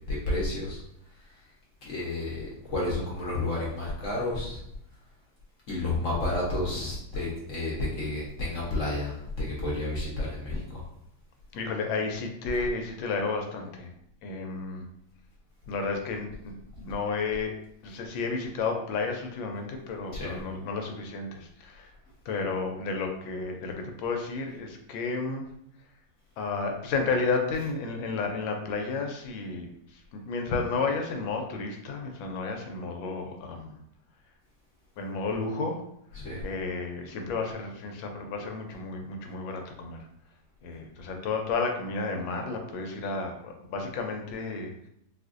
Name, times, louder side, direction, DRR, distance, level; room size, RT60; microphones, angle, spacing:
voice 1, 0.1-0.8 1.2-1.4 1.8-4.6 5.7-10.8 12.5-12.6 20.1-20.4 27.5-27.7 36.1-36.4, left 2 dB, 55° left, -5 dB, 0.9 m, -31 dB
voice 2, 11.5-13.9 14.2-14.9 15.7-17.5 17.8-21.9 22.2-25.5 26.4-33.8 35.0-35.8 36.4-40.1 40.6-44.9, left 4 dB, 75° left, 3 dB, 1.3 m, -32 dB
4.2 x 2.5 x 2.4 m, 0.74 s
omnidirectional pair, 2.2 m